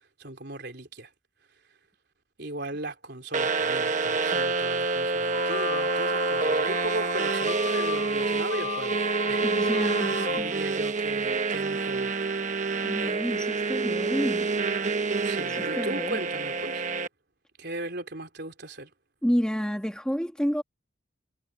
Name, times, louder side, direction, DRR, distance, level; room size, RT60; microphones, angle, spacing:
voice 1, 0.2-1.1 2.4-9.0 9.3-9.7 10.0-12.2 15.2-16.9 17.6-18.9, right 2 dB, 55° right, 4.1 m, -37 dB
sound 1, 3.3-17.1, right 4 dB, 40° right, 1.1 m, -27 dB
sound 2, 5.3-10.4, left 4 dB, 35° left, 2.0 m, -35 dB
voice 2, 9.4-10.5 12.8-14.5 15.4-16.2 19.2-20.6, equal, 5° left, 1.7 m, -30 dB
head